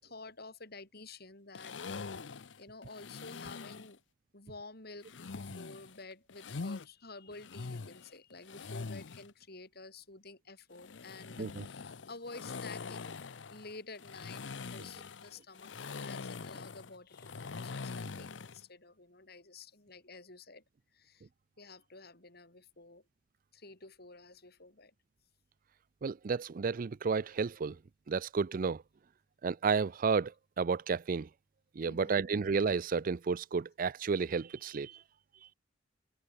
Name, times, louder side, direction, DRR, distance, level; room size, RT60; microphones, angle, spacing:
voice 1, 0.0-4.0 4.3-13.2 13.5-20.6 20.9-21.3 21.6-23.0 23.5-24.9 31.8-32.3, left 3 dB, 55° left, 5.7 m, -51 dB
sound 1, 1.5-3.9 5.0-6.9 7.3-9.3 10.7-18.6, left 4 dB, 75° left, 0.7 m, -43 dB
voice 2, 26.0-27.8 28.1-28.8 29.4-31.3 31.8-35.0, right 5 dB, 50° right, 0.4 m, -32 dB
head